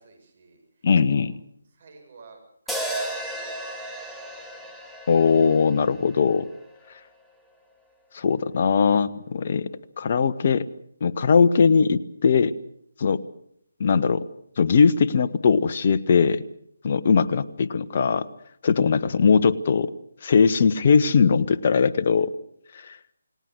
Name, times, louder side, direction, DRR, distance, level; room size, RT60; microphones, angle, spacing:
voice 1, 0.0-1.3 1.7-2.4 2.6-4.8, right 4 dB, 50° right, 5 dB, 7.4 m, -52 dB
voice 2, 0.8-1.3 5.1-6.5 8.1-9.7 10.0-10.7 11.0-12.5 13.0-13.2 13.8-14.3 14.6-16.4 16.8-18.3 18.6-19.9 20.2-22.3 22.8-23.0, left 5 dB, 45° left, 14 dB, 1.3 m, -20 dB
sound 1, 2.7-7.0, right 1 dB, ahead, 2.4 m, -35 dB
29.0 x 19.0 x 6.4 m, 0.72 s
figure-of-eight pair, 150°, 0 cm